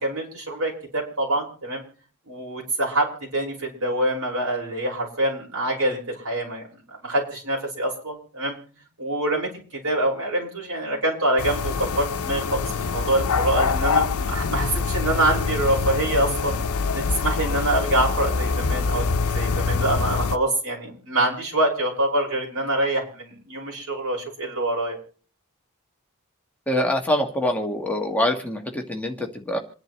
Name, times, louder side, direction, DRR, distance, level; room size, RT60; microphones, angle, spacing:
voice 1, 0.0-1.8 2.3-6.6 7.0-8.6 9.0-9.5 9.8-16.6 16.9-19.0 19.3-25.0, right 1 dB, 75° right, -2 dB, 5.6 m, -25 dB
sound 1, 11.4-20.4, left 4 dB, 90° left, 0.7 m, -25 dB
voice 2, 26.7-29.6, left 1 dB, 5° left, 2 dB, 1.4 m, -24 dB
27.5 x 10.5 x 3.1 m, 0.41 s
head